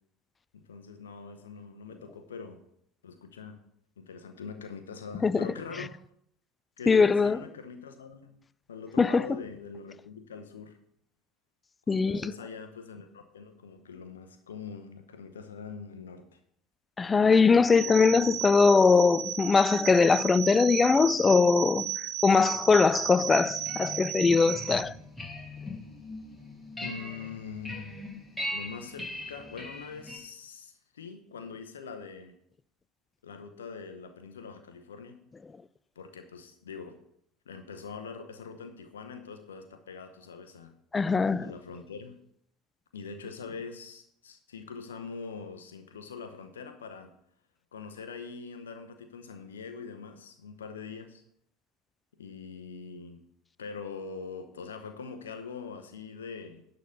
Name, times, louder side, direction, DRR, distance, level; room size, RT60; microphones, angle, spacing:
voice 1, 0.5-2.6 3.0-3.6 4.0-6.0 6.8-8.4 8.7-10.8 11.9-16.4 26.8-27.9 28.5-32.3 33.2-35.2 36.0-37.0 37.5-40.7 41.4-42.2 42.9-47.1 47.7-51.2 52.2-53.2 53.6-56.6, left 5 dB, 80° left, 0.8 m, -43 dB
voice 2, 6.9-7.4 9.0-9.2 11.9-12.3 17.0-24.9 40.9-41.5, left 4 dB, 20° left, 0.3 m, -22 dB
sound 1, 17.7-24.8, right 11 dB, 60° right, 1.4 m, -35 dB
sound 2, 23.4-30.2, left 1 dB, 5° left, 2.5 m, -40 dB
11.5 x 3.9 x 6.8 m
figure-of-eight pair, 70°, 0 cm